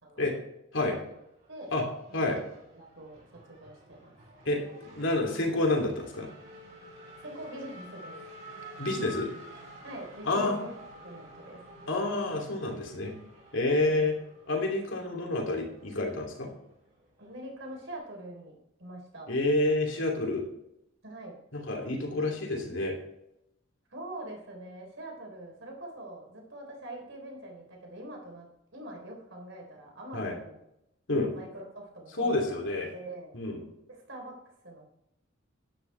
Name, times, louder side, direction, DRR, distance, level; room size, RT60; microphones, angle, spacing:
Race car auto racing / Accelerating revving vroom, 1.1-18.0, right 1 dB, 40° right, 4.5 m, -50 dB
voice 1, 2.1-4.1 7.2-8.2 9.8-10.7 11.0-11.6 13.9-14.1 17.2-18.5 18.8-19.3 21.0-21.4 23.9-28.5 28.7-30.6 31.3-32.6 32.9-33.3 33.9-34.9, right 1 dB, 65° right, 0 dB, 3.7 m, -44 dB
voice 2, 4.4-6.3 8.8-9.3 10.2-10.6 11.9-13.1 13.5-14.1 14.5-16.5 19.3-20.5 21.5-23.0 30.1-30.4 31.1-31.3 32.2-32.9 33.3-33.6, left 2 dB, 65° left, 1 dB, 2.9 m, -28 dB
12.0 x 10.0 x 3.4 m, 0.82 s
head